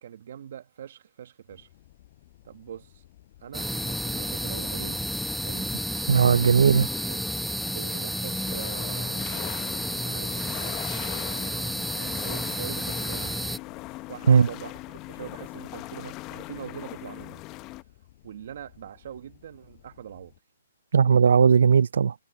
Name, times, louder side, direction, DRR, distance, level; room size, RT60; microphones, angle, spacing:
voice 1, 0.0-1.7 2.4-3.1 3.4-5.0 5.4-5.7 6.6-7.3 7.7-9.5 10.0-10.9 11.2-13.4 14.1-17.4 18.2-20.3, right 9 dB, 55° right, 1.2 m, -43 dB
sound 1, 1.5-20.4, left 15 dB, 40° left, 6.9 m, -56 dB
sound 2, 3.5-13.6, equal, ahead, 1.0 m, -31 dB
voice 2, 6.1-6.8 14.3-14.5 20.9-22.1, right 6 dB, 75° right, 0.4 m, -18 dB
sound 3, 8.5-17.8, left 19 dB, 25° left, 0.7 m, -40 dB
hypercardioid pair, 155°, 0 cm